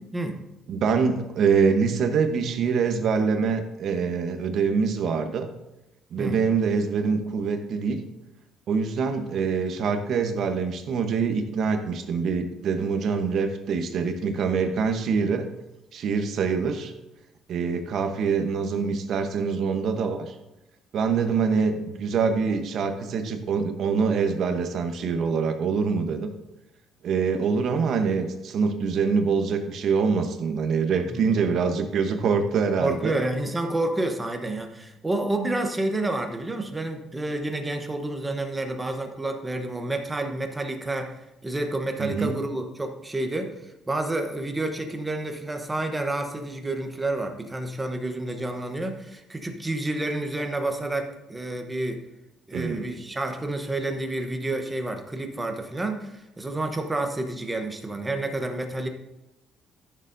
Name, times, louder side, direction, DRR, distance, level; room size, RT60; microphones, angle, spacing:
voice 1, 0.7-5.5 6.1-8.0 8.7-15.5 15.9-16.9 17.5-20.3 20.9-26.3 27.0-33.2 42.0-42.3 52.5-52.9, right 5 dB, 55° right, 6 dB, 1.0 m, -25 dB
voice 2, 32.8-52.0 52.5-58.9, right 2 dB, 10° right, 5 dB, 0.9 m, -29 dB
13.5 x 6.7 x 2.7 m, 0.94 s
cardioid pair, 140°, 0 cm